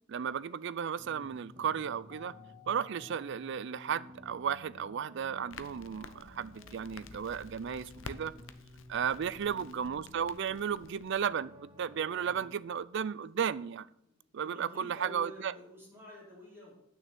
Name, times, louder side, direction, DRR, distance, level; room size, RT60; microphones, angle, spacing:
voice 1, 0.1-2.3 2.7-8.3 8.9-13.9 14.3-15.5, right 7 dB, 60° right, 0.4 m, -34 dB
sound 1, 1.0-12.5, left 1 dB, 30° right, 1.7 m, -54 dB
Keyboard (musical), 2.1-4.4, left 11 dB, 40° left, 0.9 m, -59 dB
Crackle, 5.5-11.2, left 4 dB, 75° left, 0.7 m, -51 dB
voice 2, 14.0-16.8, equal, 10° right, 4.8 m, -50 dB
8.9 x 6.5 x 6.9 m
head